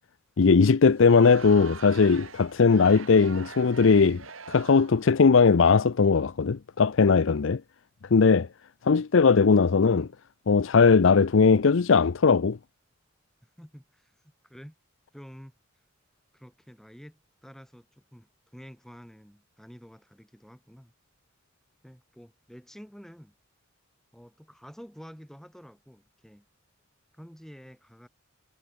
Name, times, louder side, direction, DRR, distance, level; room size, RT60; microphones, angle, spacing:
voice 1, 0.4-4.2 4.5-7.6 8.1-8.5 8.8-10.1 10.5-12.6, left 5 dB, 65° left, 0.5 m, -19 dB
Crowd, 0.9-5.1, right 5 dB, 75° right, 2.9 m, -44 dB
voice 2, 13.4-14.7 15.1-15.6 16.3-20.9 21.8-23.3 24.1-26.5 27.1-28.1, equal, ahead, 6.4 m, -49 dB
head